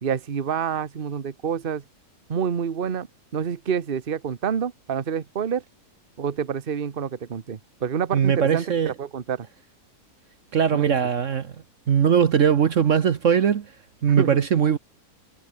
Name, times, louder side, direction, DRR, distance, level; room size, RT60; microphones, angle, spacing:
voice 1, 0.0-1.8 2.3-3.1 3.3-5.6 6.2-9.5 10.7-10.9 14.2-14.4, right 7 dB, 40° right, 1.2 m, -27 dB
voice 2, 8.1-8.9 10.5-11.5 11.9-13.7 14.0-14.8, right 8 dB, 55° right, 1.3 m, -20 dB
omnidirectional pair, 1.6 m